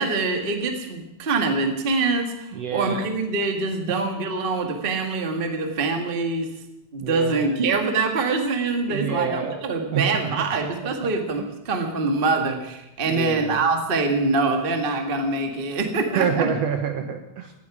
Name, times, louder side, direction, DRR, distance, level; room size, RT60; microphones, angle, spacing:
voice 1, 0.0-6.5 6.9-16.5, right 3 dB, 35° right, 4 dB, 0.9 m, -24 dB
voice 2, 2.5-3.1 3.4-3.5 7.0-7.6 8.9-9.6 9.9-11.1 13.1-13.7 16.1-17.5, right 7 dB, 65° right, 5 dB, 1.7 m, -28 dB
18.5 x 15.0 x 4.9 m, 0.90 s
omnidirectional pair, 4.0 m